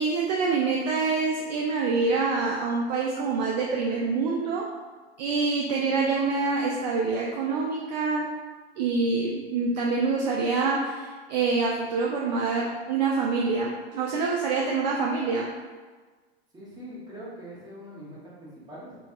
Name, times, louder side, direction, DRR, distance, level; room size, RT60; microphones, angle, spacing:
voice 1, 0.0-4.7 5.2-8.3 8.8-15.5, right 4 dB, 45° right, -2 dB, 0.4 m, -26 dB
voice 2, 16.5-19.0, equal, 15° right, -7 dB, 0.9 m, -43 dB
3.6 x 2.5 x 2.4 m, 1.4 s
figure-of-eight pair, 90°, 32 cm